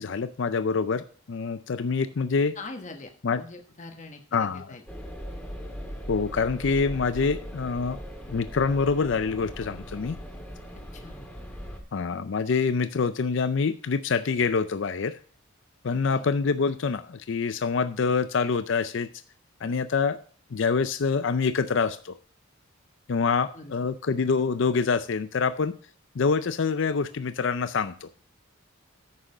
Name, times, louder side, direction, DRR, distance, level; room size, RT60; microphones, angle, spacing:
voice 1, 0.0-2.6 3.2-3.4 4.3-4.7 6.1-8.0 8.3-10.2 11.9-15.2 15.8-19.1 19.6-20.2 20.5-22.1 23.1-25.7 26.2-28.1, left 5 dB, 60° left, 12 dB, 0.5 m, -26 dB
voice 2, 2.5-3.1 3.4-4.8 10.9-11.2 16.1-16.2 23.5-23.9, left 3 dB, 35° left, 4 dB, 1.2 m, -42 dB
sound 1, 4.9-11.8, equal, 5° left, 1.7 m, -39 dB
9.7 x 6.4 x 4.9 m, 0.43 s
head